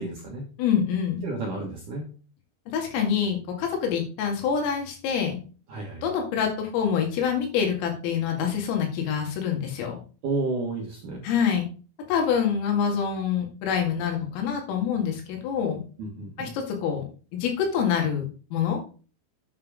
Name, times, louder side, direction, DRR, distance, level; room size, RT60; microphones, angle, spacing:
voice 1, 0.0-0.5 1.2-2.1 5.7-6.0 10.2-11.2 16.0-16.5, right 3 dB, 65° right, -1 dB, 2.1 m, -31 dB
voice 2, 0.6-1.2 2.7-5.4 6.0-10.0 11.2-11.7 12.1-15.8 16.4-17.0 17.4-18.8, left 7 dB, 85° left, 1 dB, 4.8 m, -26 dB
9.4 x 5.6 x 4.9 m, 0.38 s
omnidirectional pair, 5.9 m